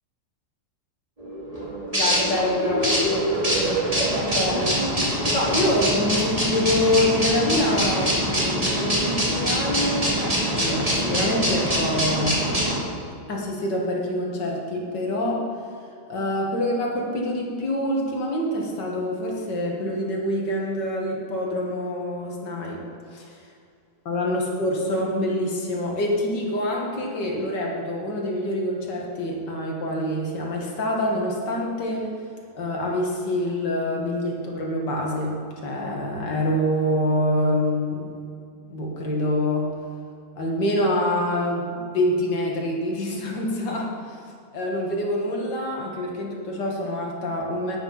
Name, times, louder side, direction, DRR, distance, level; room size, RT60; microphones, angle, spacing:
sound 1, 1.2-12.8, equal, 20° right, 2.6 m, -24 dB
voice 1, 1.9-3.8 4.3-4.8 5.1-12.4 13.3-15.5 16.1-22.8 23.1-23.2 24.1-32.1 32.5-38.1 38.7-39.7 40.4-44.2 44.5-47.8, left 1 dB, 65° left, -1 dB, 2.3 m, -26 dB
10.0 x 8.7 x 5.7 m, 2.3 s
omnidirectional pair, 2.1 m